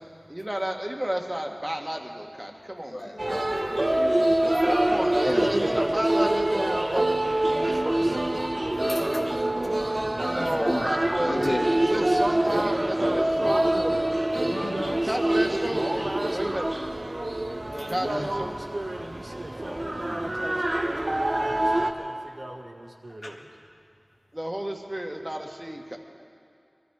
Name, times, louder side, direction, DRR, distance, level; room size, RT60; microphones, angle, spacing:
voice 1, 0.3-3.2 4.9-7.1 7.7-7.8 9.5-9.8 10.2-11.6 11.9-13.6 15.1-15.8 16.3-16.6 17.9-18.5 24.3-26.0, right 1 dB, 20° right, 2 dB, 1.5 m, -32 dB
voice 2, 2.9-4.2 4.4-5.5 7.5-7.7 8.7-9.5 10.3-10.9 11.3-11.6 12.5-12.6 13.4-13.5 13.7-13.8 14.5-15.0 15.9-16.0 17.7-18.2 18.9-19.1 19.6-19.7 23.2-23.4, left 1 dB, 85° left, -1 dB, 1.6 m, -34 dB
sound 1, 3.2-21.9, right 1 dB, 45° right, 0.9 m, -26 dB
voice 3, 5.4-8.4 8.9-9.3 11.9-14.0 14.5-16.8 17.7-23.4, right 1 dB, 60° right, 1 dB, 1.7 m, -34 dB
21.5 x 13.5 x 4.8 m, 2.4 s
wide cardioid pair, 55°, 0 cm